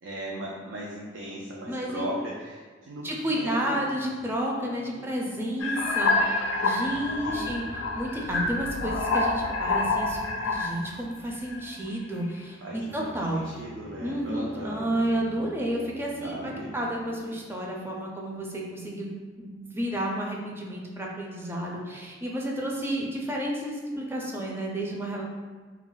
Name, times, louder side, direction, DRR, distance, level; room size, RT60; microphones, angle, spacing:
voice 1, 0.0-3.8 4.6-5.1 7.2-7.6 12.6-13.1 13.4-14.8 16.2-16.8, right 1 dB, 90° right, -4 dB, 0.4 m, -38 dB
voice 2, 1.7-2.1 3.0-7.7 7.9-13.4 14.0-16.4 16.7-19.1 19.4-25.2, right 1 dB, 10° right, -2 dB, 0.4 m, -31 dB
sound 1, 5.6-10.9 11.5-11.9, left 3 dB, 80° left, 0.3 m, -27 dB
Bowed string instrument, 12.6-17.5, equal, 60° right, 0.7 m, -47 dB
2.3 x 2.1 x 3.8 m, 1.5 s
head